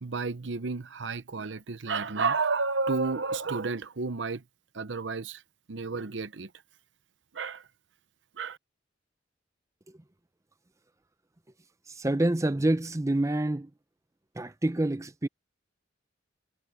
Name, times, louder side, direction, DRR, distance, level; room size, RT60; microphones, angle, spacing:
voice 1, 0.0-4.4 4.7-5.4 5.7-6.5 7.3-7.6 8.4-8.6, right 4 dB, 75° right, 0.8 m, -31 dB
voice 2, 11.9-13.7 14.4-15.3, right 1 dB, 15° right, 0.6 m, -27 dB
head